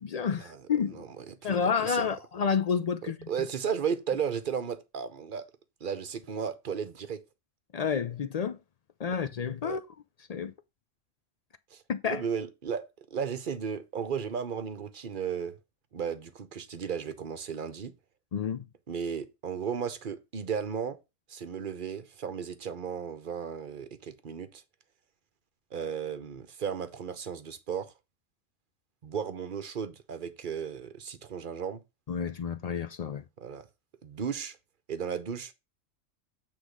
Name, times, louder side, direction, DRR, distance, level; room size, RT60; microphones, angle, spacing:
voice 1, 0.0-1.1 1.4-3.3 7.7-8.6 9.0-9.8 10.3-10.5 11.9-12.2 18.3-18.6 32.1-33.2, left 6 dB, 65° left, 0.4 m, -30 dB
voice 2, 0.9-2.1 3.3-5.5 5.8-7.2 9.6-9.8 11.7-15.6 15.9-17.9 18.9-21.0 21.3-24.6 25.7-27.9 29.0-31.8 33.4-33.7 34.0-34.6 34.9-35.5, right 7 dB, 45° right, 0.9 m, -35 dB
8.2 x 3.6 x 5.0 m
omnidirectional pair, 1.3 m